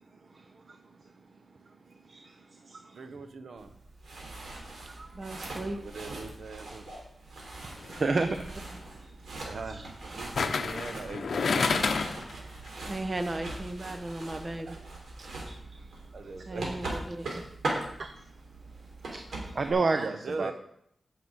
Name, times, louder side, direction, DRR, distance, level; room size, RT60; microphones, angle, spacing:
voice 1, 0.3-0.8 2.0-2.4 2.6-3.0 4.8-5.5 7.9-8.3 15.7-16.0 18.0-18.3 19.1-20.5, right 3 dB, 45° right, 7 dB, 0.7 m, -31 dB
voice 2, 2.9-3.7 5.8-6.9 7.6-7.9 9.4-11.8 14.4-14.8 15.2-15.3 16.1-16.9 19.7-20.5, right 4 dB, 60° right, 8 dB, 1.0 m, -41 dB
sound 1, 3.6-19.7, right 2 dB, 80° right, 3.5 m, -41 dB
voice 3, 5.1-5.8 8.2-8.3 12.8-14.8 16.4-17.4, right 1 dB, 30° right, 7 dB, 1.0 m, -36 dB
sound 2, 7.7-8.0 10.4-12.3 12.7-12.8, left 4 dB, 60° left, 0.8 m, -28 dB
9.5 x 6.8 x 7.9 m, 0.72 s
wide cardioid pair, 180°, 0 cm